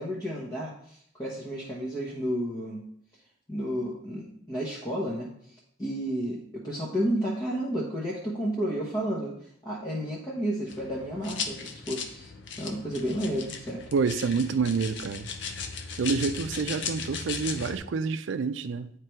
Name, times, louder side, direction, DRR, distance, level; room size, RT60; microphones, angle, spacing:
voice 1, 0.0-2.8 3.5-5.3 5.8-9.3 9.6-12.3 12.6-13.8, equal, 20° left, 1.0 m, -31 dB
sound 1, 10.7-17.8, left 5 dB, 70° left, 0.7 m, -37 dB
voice 2, 13.9-15.3 16.0-18.9, right 5 dB, 70° right, 0.4 m, -28 dB
9.1 x 3.3 x 4.5 m
head